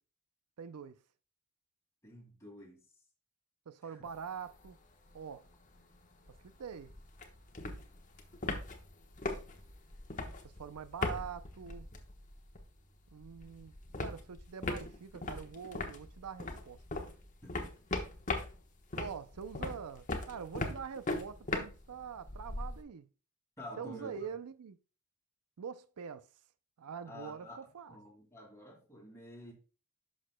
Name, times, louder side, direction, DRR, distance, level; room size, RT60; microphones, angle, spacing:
voice 1, 0.6-1.0 3.7-4.8 5.1-5.5 6.6-6.9 10.6-11.9 13.1-13.7 14.0-17.1 19.0-23.1 23.8-24.8 25.6-26.3 26.8-28.0, right 7 dB, 90° right, 0.5 m, -44 dB
voice 2, 2.0-2.8 3.8-4.1 17.4-17.7 23.6-24.3 27.0-27.6 27.9-29.5, equal, 15° left, 2.4 m, -49 dB
sound 1, 4.1-4.8 5.1-5.2 5.4-12.8 13.1-22.8, left 2 dB, 35° left, 1.1 m, -40 dB
11.0 x 6.3 x 2.2 m
head